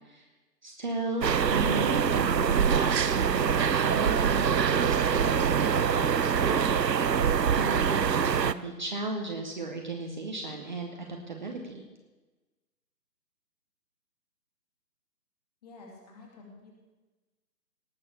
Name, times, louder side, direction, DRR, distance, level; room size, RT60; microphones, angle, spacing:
voice 1, 0.6-6.7 7.5-11.8, right 2 dB, 30° right, 2 dB, 1.1 m, -35 dB
sound 1, 1.2-8.5, right 7 dB, 75° right, 0.7 m, -24 dB
voice 2, 15.6-16.8, left 3 dB, 25° left, 0 dB, 2.4 m, -50 dB
18.0 x 6.9 x 6.8 m, 1.2 s
figure-of-eight pair, 150°, 50 cm